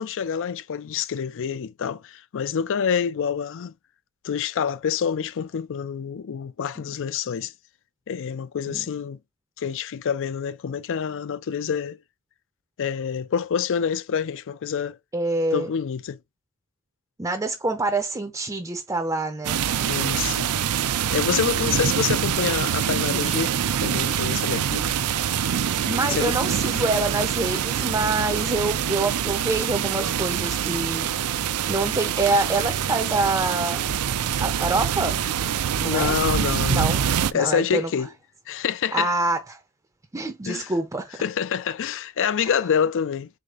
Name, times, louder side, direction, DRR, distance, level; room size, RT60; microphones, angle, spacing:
voice 1, 0.0-3.7 4.2-7.5 8.1-9.2 9.6-12.0 12.8-15.0 15.5-16.2 19.9-20.5 21.1-24.9 26.2-26.4 35.8-36.9 37.3-38.1 38.5-39.1 40.5-40.7 41.2-43.3, left 7 dB, 60° left, 0.4 m, -27 dB
voice 2, 15.1-15.7 17.2-19.6 25.9-31.1 31.4-33.9 34.4-35.2 35.8-36.2 36.7-37.0 37.3-37.9 38.9-39.6 40.1-41.2 42.4-42.5, right 2 dB, 15° right, 0.6 m, -26 dB
sound 1, 19.4-37.3, right 8 dB, 80° right, 0.5 m, -25 dB
4.9 x 3.8 x 2.4 m
head